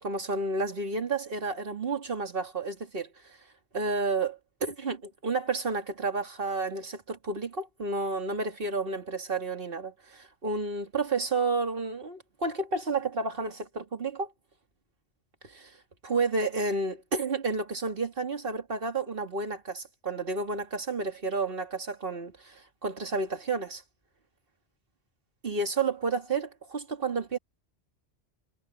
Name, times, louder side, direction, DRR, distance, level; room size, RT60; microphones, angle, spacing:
voice 1, 0.0-3.1 3.7-14.3 16.0-23.8 25.4-27.4, right 3 dB, 55° right, 2.4 m, -31 dB
omnidirectional pair, 1.1 m